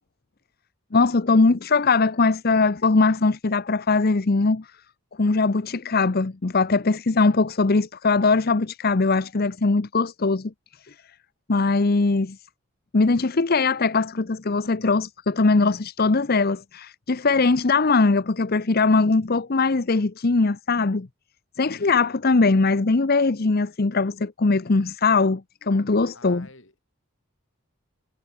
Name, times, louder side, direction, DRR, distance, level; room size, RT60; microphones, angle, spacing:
voice 1, 0.9-4.7 5.2-10.5 10.9-11.0 11.5-12.4 12.9-21.1 21.6-26.5, left 3 dB, 45° left, 0.7 m, -21 dB
voice 2, 21.5-22.3 26.1-26.8, left 2 dB, 60° left, 5.8 m, -51 dB
head